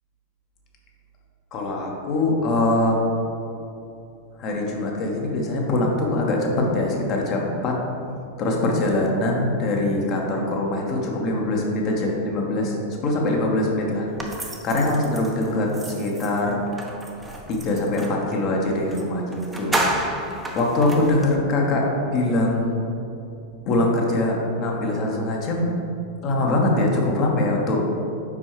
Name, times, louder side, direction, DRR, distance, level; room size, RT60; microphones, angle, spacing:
voice 1, 1.5-3.0 4.4-7.8 8.4-12.8 13.0-16.6 17.5-20.1 20.5-22.8 23.6-25.7 26.2-27.8, left 2 dB, 40° left, -1 dB, 1.1 m, -23 dB
sound 1, 14.2-18.2 18.9-19.0 19.3-21.3, right 1 dB, 10° right, 0.8 m, -31 dB
7.3 x 5.5 x 3.2 m, 2.8 s
figure-of-eight pair, 90°, 0 cm